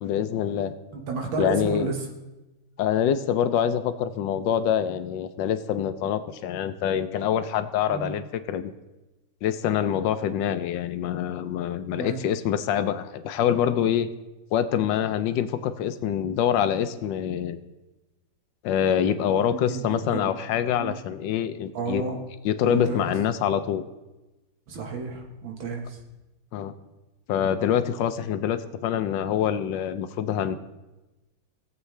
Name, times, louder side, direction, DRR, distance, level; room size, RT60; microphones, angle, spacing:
voice 1, 0.0-0.7 1.4-1.9 2.8-8.7 9.4-14.1 14.5-17.6 18.6-22.0 22.4-23.8 26.5-26.7 27.3-30.6, left 9 dB, 75° left, 11 dB, 1.3 m, -25 dB
voice 2, 0.9-2.0 7.9-8.1 12.0-12.2 19.5-20.3 20.8-21.0 21.7-22.2 22.6-23.1 24.7-26.0, right 4 dB, 90° right, 1 dB, 2.3 m, -32 dB
18.0 x 7.8 x 3.2 m, 1.1 s
omnidirectional pair, 2.1 m